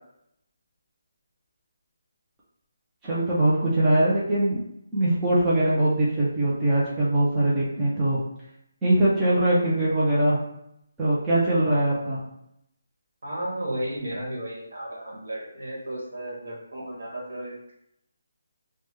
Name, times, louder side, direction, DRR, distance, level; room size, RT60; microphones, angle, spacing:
voice 1, 3.0-4.6 4.9-8.2 8.8-10.4 11.0-12.2, right 1 dB, 5° right, -10 dB, 0.5 m, -22 dB
voice 2, 13.2-17.7, right 1 dB, 60° right, -4 dB, 1.2 m, -34 dB
3.3 x 2.1 x 3.2 m, 0.78 s
hypercardioid pair, 180°, 0 cm